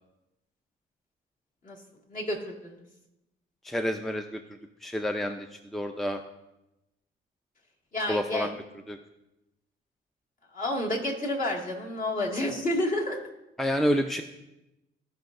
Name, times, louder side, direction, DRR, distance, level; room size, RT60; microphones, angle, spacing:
voice 1, 2.1-2.8 7.9-8.5 10.5-13.2, left 1 dB, 40° left, -2 dB, 2.1 m, -30 dB
voice 2, 3.6-4.4 4.8-5.5 5.7-6.2 8.1-8.5 8.9-9.0 13.6-14.2, equal, ahead, 6 dB, 0.5 m, -28 dB
16.0 x 5.5 x 2.6 m, 0.94 s
cardioid pair, 90°, 20 cm